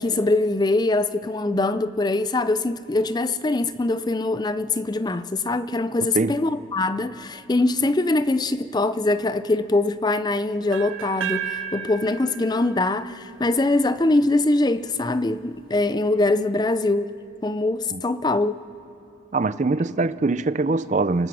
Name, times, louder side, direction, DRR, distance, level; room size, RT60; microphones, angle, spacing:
voice 1, 0.0-18.6, left 2 dB, 20° left, 0.4 m, -23 dB
sound 1, 10.7-14.6, right 7 dB, 85° right, 1.4 m, -34 dB
voice 2, 19.3-21.3, right 3 dB, 35° right, 0.5 m, -23 dB
29.0 x 19.5 x 6.3 m
head